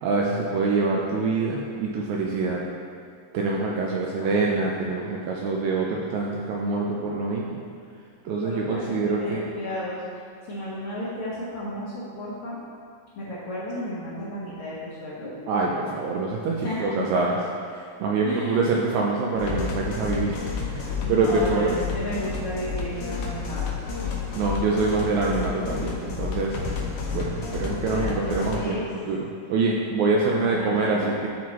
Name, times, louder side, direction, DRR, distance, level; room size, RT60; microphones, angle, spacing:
voice 1, 0.0-2.6 3.3-7.6 8.2-9.5 15.5-17.4 17.7-20.4 20.7-21.7 24.3-26.6 27.1-29.2 29.5-31.3, right 3 dB, 85° right, -2 dB, 1.6 m, -25 dB
voice 2, 4.2-4.6 8.4-10.0 10.5-12.6 13.2-15.3 16.6-17.2 18.2-18.7 21.0-23.7 27.8-28.8 30.2-31.1, equal, 60° left, -10 dB, 1.5 m, -33 dB
sound 1, 19.3-28.6, left 5 dB, 75° left, 2.4 m, -31 dB
12.0 x 4.5 x 3.0 m, 2.3 s
omnidirectional pair, 3.9 m